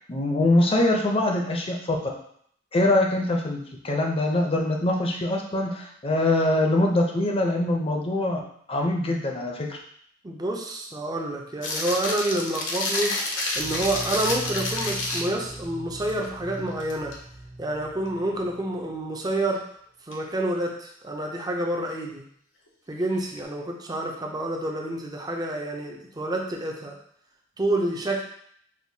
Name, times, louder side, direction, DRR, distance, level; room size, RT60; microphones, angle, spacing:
voice 1, 0.1-2.0 2.7-8.4 8.7-9.8, left 1 dB, 30° left, 0 dB, 0.6 m, -23 dB
voice 2, 10.2-13.1 13.6-17.1 17.6-19.6 20.1-22.2 22.9-26.9 27.6-28.2, right 1 dB, 20° right, 0 dB, 0.5 m, -28 dB
sound 1, 11.6-15.5 16.0-16.2 16.7-17.2 20.1-20.2 23.1-23.4, left 2 dB, 65° left, 0.8 m, -29 dB
sound 2, 13.5-18.9 19.2-19.4, right 1 dB, 70° right, 1.1 m, -40 dB
6.2 x 2.2 x 2.7 m, 0.67 s
head